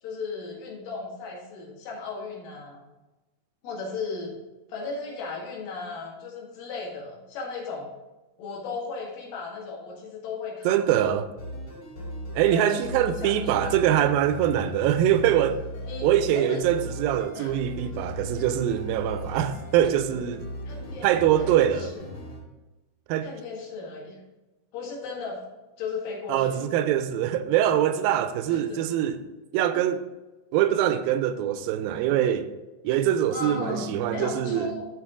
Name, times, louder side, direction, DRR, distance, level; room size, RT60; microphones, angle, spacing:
voice 1, 0.0-2.8 3.6-4.3 4.7-7.9 8.4-10.8 12.5-13.9 15.8-16.6 17.4-17.5 20.7-21.1 21.4-22.1 23.2-24.2 24.7-25.4 25.8-26.6 28.5-28.8 33.3-34.9, left 4 dB, 70° left, 3.4 m, -36 dB
voice 2, 10.7-11.3 12.3-15.6 16.0-20.5 21.0-21.9 23.1-23.3 26.3-29.2 29.5-30.1 30.5-32.5 32.8-34.8, right 11 dB, 85° right, 2.4 m, -23 dB
sound 1, 11.4-22.4, equal, 45° left, 2.1 m, -37 dB
13.5 x 4.6 x 3.8 m
omnidirectional pair, 4.2 m